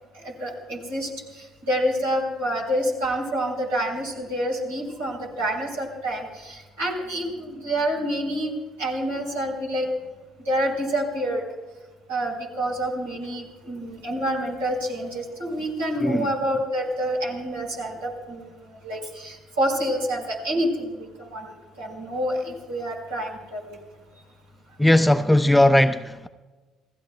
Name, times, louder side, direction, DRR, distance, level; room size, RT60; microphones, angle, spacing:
voice 1, 0.4-1.1 1.7-8.5 8.8-9.9 10.5-11.4 12.1-18.5 18.8-23.6, equal, 85° right, 4.3 m, -27 dB
voice 2, 24.8-26.3, left 1 dB, 5° left, 0.7 m, -18 dB
29.0 x 16.0 x 2.2 m
hypercardioid pair, 55°, 0 cm